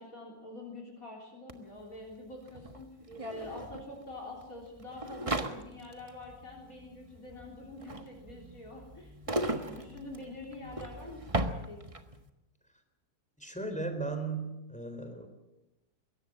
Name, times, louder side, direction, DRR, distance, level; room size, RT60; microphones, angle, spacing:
voice 1, 0.0-2.9 3.2-11.8, left 2 dB, 50° left, 0 dB, 4.0 m, -46 dB
sound 1, 1.5-1.6 1.8-12.2, right 1 dB, 20° right, 1.3 m, -38 dB
voice 2, 13.4-15.3, right 3 dB, 5° left, 6 dB, 3.7 m, -36 dB
22.0 x 17.5 x 7.6 m, 0.94 s
omnidirectional pair, 2.0 m